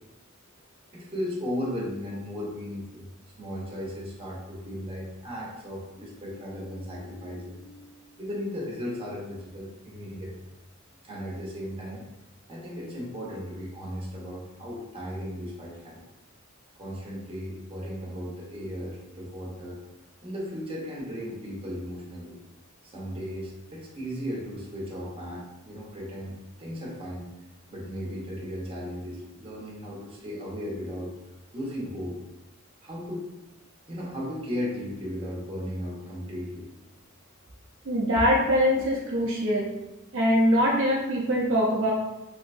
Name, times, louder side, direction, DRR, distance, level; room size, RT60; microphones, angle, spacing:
voice 1, 0.9-3.0 3.4-10.3 11.0-12.0 12.5-16.0 16.8-19.8 20.2-22.3 22.9-27.2 27.7-31.1 31.5-32.1 32.8-33.3 33.9-36.7, equal, 25° right, -5 dB, 0.8 m, -36 dB
voice 2, 37.9-39.7 40.1-41.9, equal, 65° right, -4 dB, 0.6 m, -23 dB
3.3 x 2.8 x 2.5 m, 0.98 s
head